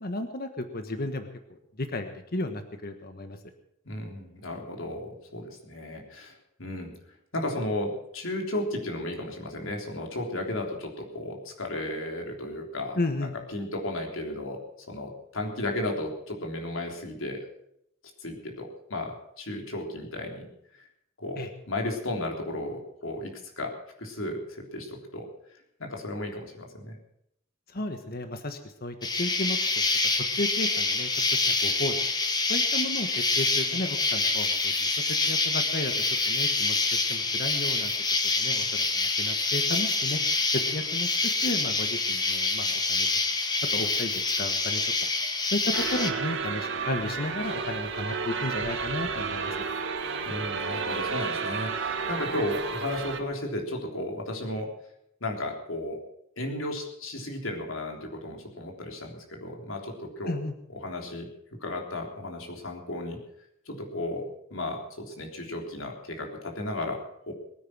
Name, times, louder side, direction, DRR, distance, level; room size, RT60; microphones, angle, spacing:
voice 1, 0.0-3.4 13.0-13.3 21.4-21.5 27.7-29.8 30.3-31.9 32.5-34.9 35.3-35.9 36.3-37.9 38.3-40.2 40.5-41.1 41.4-43.4 43.7-45.1 45.5-49.5 60.3-60.5, left 1 dB, 50° left, 7 dB, 1.4 m, -33 dB
voice 2, 3.9-6.3 6.6-6.9 7.3-14.6 14.9-17.4 18.2-20.5 21.2-23.7 24.0-25.3 25.8-27.0 50.2-54.7 55.2-56.0 56.4-60.4 60.7-61.3 61.6-63.2 63.7-67.3, left 1 dB, 80° left, 1 dB, 3.5 m, -34 dB
Insect, 29.0-46.1, left 3 dB, 20° left, 1.3 m, -26 dB
sound 1, 45.7-53.2, right 5 dB, 65° right, 1.9 m, -31 dB
21.5 x 9.6 x 6.1 m, 0.75 s
head